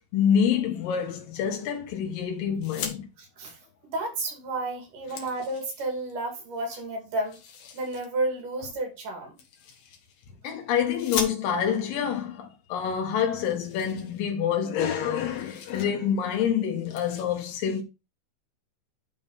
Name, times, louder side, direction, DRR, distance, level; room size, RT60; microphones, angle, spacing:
voice 1, 0.1-3.1 10.4-17.8, left 8 dB, 90° left, 3.1 m, -27 dB
sound 1, 2.5-3.0 4.3-4.4 4.7-6.1 7.2-8.1 9.4-10.3 10.9-11.8 12.7-12.8 13.0-13.1 13.4-14.7 15.0-15.9 16.2-16.4 16.8-17.2, left 7 dB, 75° left, 2.8 m, -39 dB
voice 2, 3.2-3.6 3.9-7.4 7.7-9.3, right 2 dB, 70° right, 4.0 m, -31 dB
10.5 x 3.7 x 4.1 m
omnidirectional pair, 3.9 m